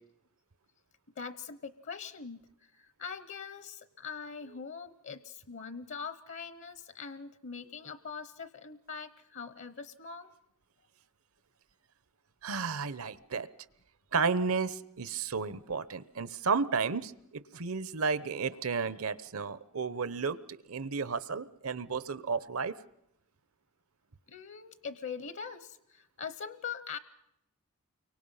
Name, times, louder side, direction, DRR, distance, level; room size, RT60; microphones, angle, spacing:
voice 1, 1.2-10.3 24.3-27.0, left 6 dB, 60° left, 13 dB, 0.9 m, -42 dB
voice 2, 12.4-13.5 14.1-22.8, right 5 dB, 75° right, 16 dB, 0.9 m, -32 dB
30.0 x 24.0 x 5.7 m, 0.78 s
head